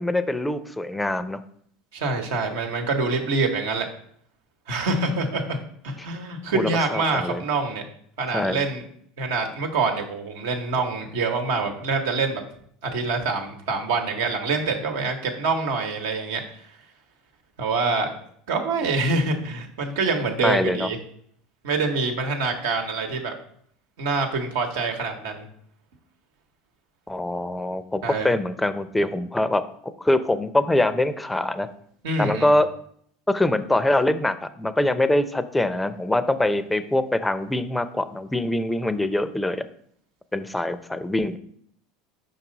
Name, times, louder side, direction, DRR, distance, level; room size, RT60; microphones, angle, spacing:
voice 1, 0.0-1.4 6.5-7.4 8.3-8.6 20.4-20.9 27.1-29.6 30.0-31.7 32.2-32.7 33.3-39.7 40.3-41.4, left 1 dB, 10° left, 12 dB, 0.5 m, -23 dB
voice 2, 1.9-3.9 4.7-5.6 5.8-7.8 8.2-8.8 9.2-12.4 12.8-16.4 17.6-18.1 18.5-21.0 21.6-23.3 24.0-25.4 28.0-28.3 32.0-32.5, right 3 dB, 80° right, 3 dB, 1.1 m, -25 dB
5.4 x 4.6 x 3.9 m, 0.64 s
supercardioid pair, 95°, 0 cm